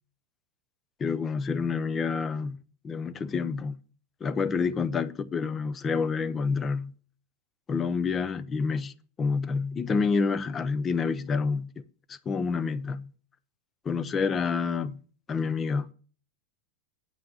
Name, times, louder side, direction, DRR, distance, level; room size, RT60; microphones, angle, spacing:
voice 1, 1.0-2.6 2.8-3.8 4.2-6.9 7.7-8.9 9.2-11.7 12.1-13.1 13.8-15.0 15.3-15.9, left 5 dB, 25° left, 0.7 m, -28 dB
9.1 x 5.7 x 6.4 m
hypercardioid pair, 100°, 0 cm